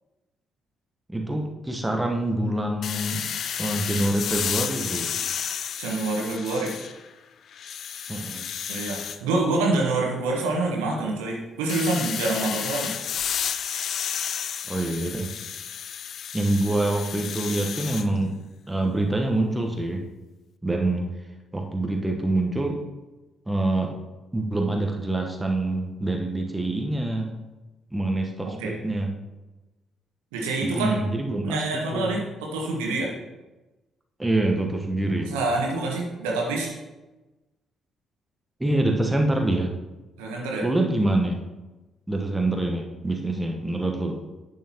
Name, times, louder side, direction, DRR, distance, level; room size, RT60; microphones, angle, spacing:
voice 1, 1.1-3.3 3.6-5.1 8.1-8.5 14.7-15.3 16.3-18.4 18.7-20.0 20.6-21.3 21.5-22.8 23.5-24.0 24.3-27.4 27.9-29.1 30.6-32.1 34.2-35.4 38.6-39.7 40.6-41.4 42.1-44.2, right 2 dB, 10° right, 2 dB, 1.1 m, -26 dB
sound 1, 2.8-7.1 7.5-9.2 11.7-18.1, left 8 dB, 50° left, 0.4 m, -31 dB
voice 2, 5.8-6.7 8.7-12.9 28.6-28.7 30.3-31.0 31.4-33.1 35.3-36.7 40.2-40.6, right 2 dB, 70° right, -1 dB, 1.3 m, -26 dB
10.5 x 6.7 x 2.9 m, 1.1 s
figure-of-eight pair, 40°, 0 cm